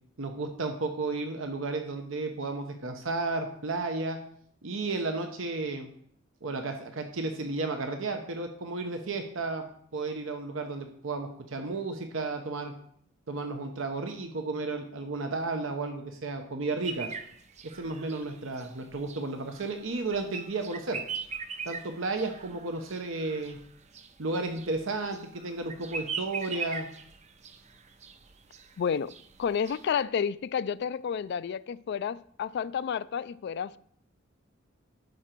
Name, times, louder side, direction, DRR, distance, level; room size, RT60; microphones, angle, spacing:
voice 1, 0.2-4.2 4.6-5.9 6.4-9.6 9.9-12.7 13.3-17.1 17.6-21.0 21.7-23.6 24.2-26.9, right 3 dB, 70° right, 5 dB, 0.9 m, -33 dB
sound 1, 16.8-30.0, right 5 dB, 35° right, 0.5 m, -41 dB
voice 2, 28.8-29.1 29.4-33.8, left 7 dB, 55° left, 16 dB, 0.3 m, -30 dB
11.5 x 5.0 x 4.5 m, 0.64 s
head